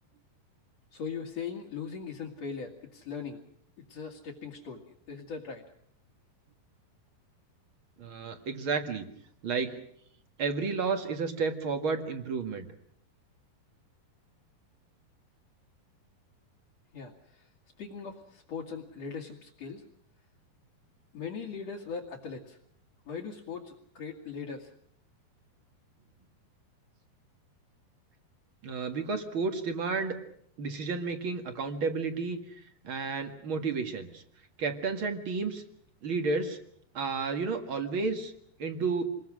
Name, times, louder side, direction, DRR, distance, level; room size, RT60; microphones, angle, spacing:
voice 1, 0.9-3.4 3.9-5.6 16.9-17.5 17.8-19.8 21.1-22.6 23.1-24.7, left 6 dB, 45° left, -2 dB, 2.8 m, -40 dB
voice 2, 8.0-9.1 9.4-9.8 10.4-12.7 28.6-30.2 30.6-34.2 34.6-35.6 36.0-36.6 36.9-38.3 38.6-39.0, right 4 dB, 45° right, 7 dB, 1.8 m, -31 dB
27.5 x 21.5 x 6.3 m, 0.68 s
omnidirectional pair, 4.8 m